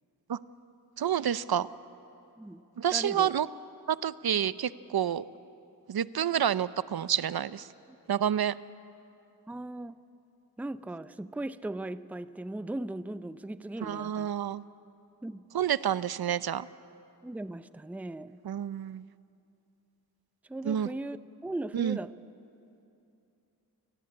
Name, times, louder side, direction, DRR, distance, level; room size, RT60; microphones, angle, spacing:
voice 1, 1.0-1.7 2.8-3.5 3.9-5.2 5.9-7.7 8.1-8.5 13.8-14.6 15.5-16.7 18.4-19.0 20.6-20.9 21.7-22.0, right 9 dB, 65° right, 16 dB, 0.6 m, -29 dB
voice 2, 2.9-3.3 7.9-8.0 9.5-10.0 10.6-14.3 15.2-15.4 17.2-18.4 20.5-21.2 21.4-22.1, right 2 dB, 5° right, 13 dB, 0.5 m, -38 dB
29.0 x 17.5 x 8.7 m, 2.7 s
wide cardioid pair, 90°, 40 cm